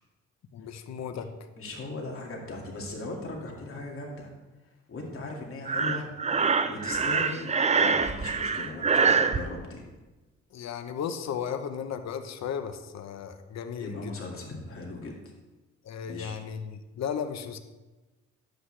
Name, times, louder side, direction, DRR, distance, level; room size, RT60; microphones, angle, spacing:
voice 1, 0.5-1.3 10.5-14.1 15.8-17.6, left 7 dB, 60° left, 8 dB, 0.9 m, -35 dB
voice 2, 1.6-4.3 4.9-6.1 6.7-9.9 13.8-15.1 16.0-16.3, left 2 dB, 45° left, 0 dB, 2.3 m, -38 dB
Breathing, 5.7-9.4, right 5 dB, 25° right, 0.5 m, -25 dB
11.5 x 8.0 x 3.3 m, 1.1 s
cardioid pair, 90°, 30 cm